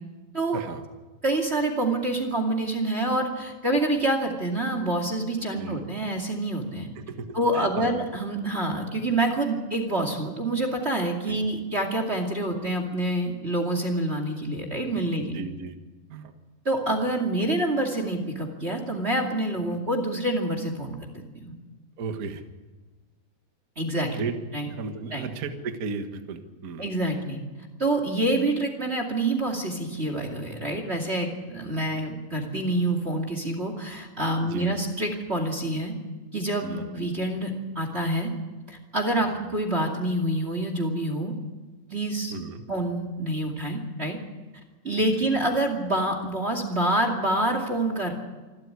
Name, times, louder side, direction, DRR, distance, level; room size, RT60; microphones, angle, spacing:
voice 1, 0.5-0.8 5.5-5.8 6.9-7.9 11.2-11.4 15.2-15.7 16.1-16.3 22.0-22.4 24.1-24.4 24.7-26.8 34.4-34.8 36.6-36.9 39.2-39.4 42.3-42.6 44.9-45.3, right 4 dB, 85° right, 7 dB, 0.7 m, -35 dB
voice 2, 1.2-6.9 7.3-15.4 16.6-21.0 21.4-21.5 23.8-24.3 24.5-24.7 25.1-25.3 26.8-27.4 27.8-35.9 36.3-38.3 38.7-41.4 41.9-42.3 42.7-44.2 44.8-48.1, right 1 dB, 20° right, 4 dB, 1.9 m, -27 dB
27.0 x 12.5 x 9.7 m, 1.2 s
omnidirectional pair, 4.3 m